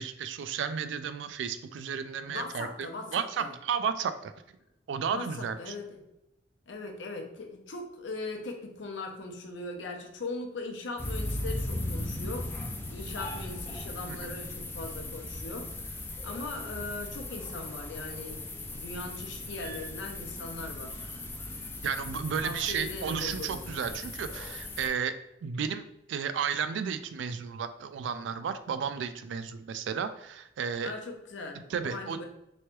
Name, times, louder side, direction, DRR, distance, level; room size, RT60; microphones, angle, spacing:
voice 1, 0.0-4.3 4.9-5.8 14.1-14.3 21.8-25.1 25.4-30.9 31.5-32.2, right 6 dB, 70° right, 11 dB, 0.3 m, -33 dB
voice 2, 2.3-3.5 5.1-6.0 6.7-12.5 12.9-21.1 22.4-23.7 30.8-32.3, left 3 dB, 75° left, 3 dB, 0.7 m, -40 dB
sound 1, 11.0-24.9, left 1 dB, 10° left, 0.3 m, -38 dB
3.3 x 3.1 x 3.0 m, 0.83 s
head